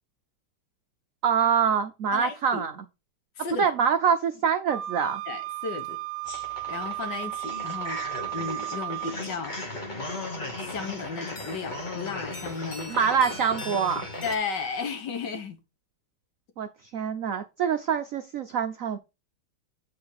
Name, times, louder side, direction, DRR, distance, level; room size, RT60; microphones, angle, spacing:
voice 1, 1.2-2.8 3.6-5.2 12.9-14.1 16.6-19.0, right 7 dB, 85° right, 0.7 m, -25 dB
voice 2, 2.1-2.6 3.4-3.7 5.3-6.0 6.7-8.0 8.3-9.6 10.5-13.0 14.2-15.6, left 5 dB, 60° left, 1.7 m, -34 dB
Wind instrument woodwind instrument, 4.7-9.2, right 17 dB, 45° right, 1.5 m, -34 dB
sound 1, 6.2-14.4, left 2 dB, 25° left, 1.2 m, -37 dB
8.8 x 4.3 x 4.8 m
omnidirectional pair, 2.3 m